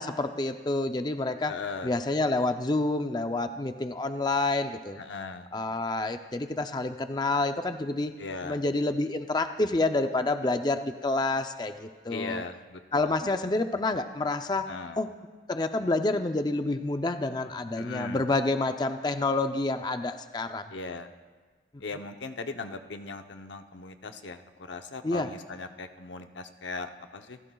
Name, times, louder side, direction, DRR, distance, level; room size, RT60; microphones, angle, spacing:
voice 1, 0.0-1.5 1.8-5.0 5.5-8.2 8.4-12.4 12.9-15.1 15.5-20.7 21.7-21.8 25.0-25.3, left 2 dB, 25° left, 7 dB, 0.5 m, -28 dB
voice 2, 1.4-1.9 5.0-5.5 8.2-8.6 12.1-13.2 14.7-15.0 17.8-18.2 20.7-21.1 21.8-27.4, left 3 dB, 90° left, 6 dB, 0.8 m, -39 dB
28.5 x 15.0 x 2.3 m, 1.4 s
head